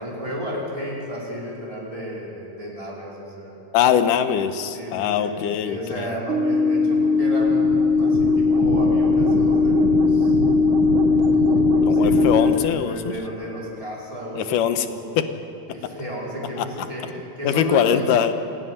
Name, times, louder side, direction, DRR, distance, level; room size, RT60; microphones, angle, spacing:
voice 1, 0.0-3.7 4.7-10.4 11.1-15.2 15.7-18.1, equal, 10° right, -5 dB, 5.0 m, -33 dB
voice 2, 3.7-6.1 11.9-13.1 14.4-14.9 15.2-15.3 16.6-16.7 17.4-18.3, left 9 dB, 80° left, 9 dB, 2.5 m, -22 dB
sound 1, 6.3-12.5, left 3 dB, 50° right, 1.8 m, -18 dB
27.0 x 11.0 x 9.9 m, 3.0 s
omnidirectional pair, 3.8 m